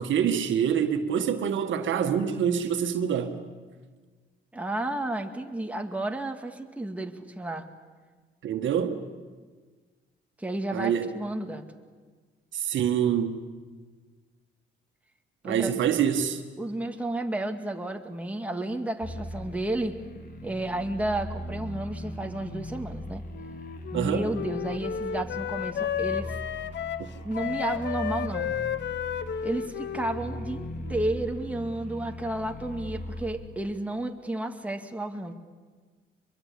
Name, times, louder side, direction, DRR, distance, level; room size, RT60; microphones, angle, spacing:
voice 1, 0.0-3.3 8.4-9.0 10.7-11.1 12.5-13.4 15.4-16.4 23.9-24.3, right 8 dB, 70° right, 1.9 m, -26 dB
voice 2, 4.5-7.7 10.4-11.6 15.4-15.8 16.6-19.9 20.4-23.2 23.9-26.3 27.2-28.5 29.4-30.6 30.9-35.3, right 1 dB, 5° right, 2.2 m, -32 dB
sound 1, 19.0-33.3, equal, 50° left, 3.7 m, -39 dB
Wind instrument woodwind instrument, 23.3-31.3, left 9 dB, 65° left, 1.0 m, -33 dB
24.5 x 22.0 x 8.6 m
cardioid pair, 90°, 20 cm